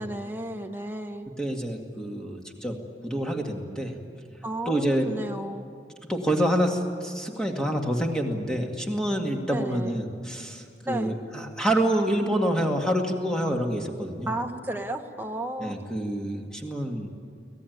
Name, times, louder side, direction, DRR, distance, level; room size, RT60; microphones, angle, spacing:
voice 1, 0.0-1.3 4.4-5.7 9.5-10.0 10.8-11.2 14.2-15.8, right 1 dB, 10° right, 4 dB, 1.1 m, -33 dB
voice 2, 1.4-2.8 3.0-4.0 4.7-5.1 6.1-14.3 15.6-17.1, right 1 dB, 5° left, 1 dB, 2.1 m, -27 dB
24.5 x 18.0 x 9.4 m, 2.2 s
head